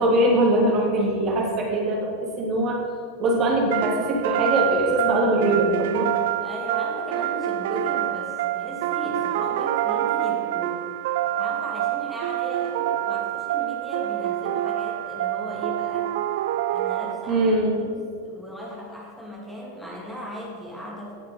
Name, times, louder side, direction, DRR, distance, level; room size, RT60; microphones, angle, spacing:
voice 1, 0.0-2.1 2.4-2.8 3.2-6.1 17.3-17.7, right 1 dB, 35° right, -2 dB, 2.9 m, -21 dB
sound 1, 3.7-17.6, right 13 dB, 55° right, 0.4 m, -27 dB
voice 2, 6.4-10.8 11.4-16.2 16.7-17.4 17.8-17.9 18.2-21.1, equal, 5° left, -4 dB, 2.6 m, -36 dB
17.5 x 6.6 x 5.4 m, 2.2 s
figure-of-eight pair, 90°, 0 cm